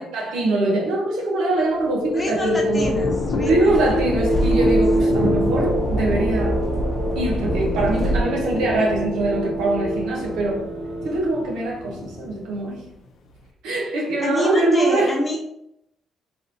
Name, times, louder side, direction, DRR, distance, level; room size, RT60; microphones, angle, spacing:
voice 1, 0.0-2.9 3.4-6.7 7.1-10.7 11.0-12.9 13.6-15.1, right 2 dB, 90° right, 1.1 m, -23 dB
Thunder / Rain, 1.6-13.5, left 3 dB, 75° left, 0.5 m, -33 dB
sound 1, 1.6-12.1, right 1 dB, 55° right, 1.0 m, -25 dB
voice 2, 2.1-4.7 5.0-5.2 14.2-15.4, left 1 dB, 25° left, 1.0 m, -28 dB
sound 2, 2.8-8.2, equal, 5° right, 0.8 m, -27 dB
4.0 x 2.6 x 2.8 m
cardioid pair, 90°, 0 cm